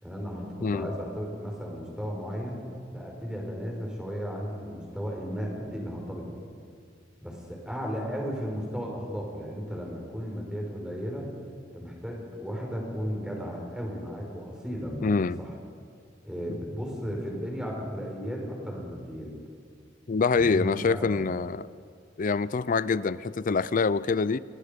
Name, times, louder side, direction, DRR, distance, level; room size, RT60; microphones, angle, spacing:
voice 1, 0.0-0.4 0.7-2.6 2.9-6.4 7.2-11.3 11.7-15.5 16.2-19.3 20.4-21.2, equal, 5° right, -1 dB, 5.1 m, -35 dB
voice 2, 0.6-0.9 15.0-15.4 20.1-21.6 22.2-24.4, left 4 dB, 45° left, 18 dB, 0.5 m, -25 dB
27.5 x 21.0 x 5.2 m, 2.2 s
head